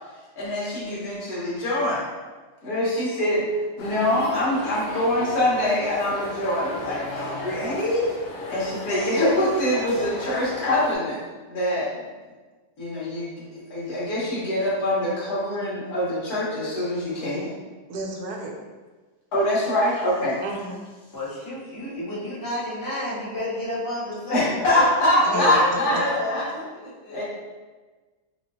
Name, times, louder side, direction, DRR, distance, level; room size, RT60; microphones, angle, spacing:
voice 1, 0.4-2.0 2.6-8.1 8.5-11.2 11.5-12.0 12.8-17.5 19.3-20.4 24.3-26.5 27.1-27.2, left 1 dB, 65° left, -8 dB, 1.7 m, -24 dB
sound 1, 3.8-11.0, left 1 dB, 85° left, 1.3 m, -35 dB
voice 2, 17.9-18.5 20.4-20.9 25.3-25.6 25.9-26.0, right 2 dB, 75° right, 0 dB, 1.1 m, -31 dB
voice 3, 21.1-24.8 25.3-27.2, left 1 dB, 30° left, -9 dB, 0.4 m, -31 dB
4.9 x 2.3 x 2.6 m, 1.3 s
omnidirectional pair, 1.8 m